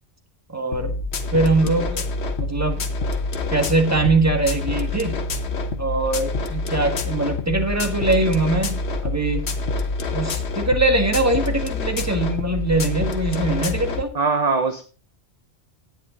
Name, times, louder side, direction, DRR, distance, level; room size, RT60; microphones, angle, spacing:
voice 1, 0.5-0.9 1.3-2.1 2.4-2.9 3.5-5.2 5.8-9.5 10.1-14.1, right 2 dB, 15° right, 4 dB, 1.7 m, -22 dB
sound 1, 0.7-14.0, left 3 dB, 75° left, 1.3 m, -26 dB
voice 2, 14.1-14.8, right 4 dB, 40° right, 7 dB, 1.0 m, -21 dB
11.0 x 9.1 x 4.0 m, 0.38 s
omnidirectional pair, 1.1 m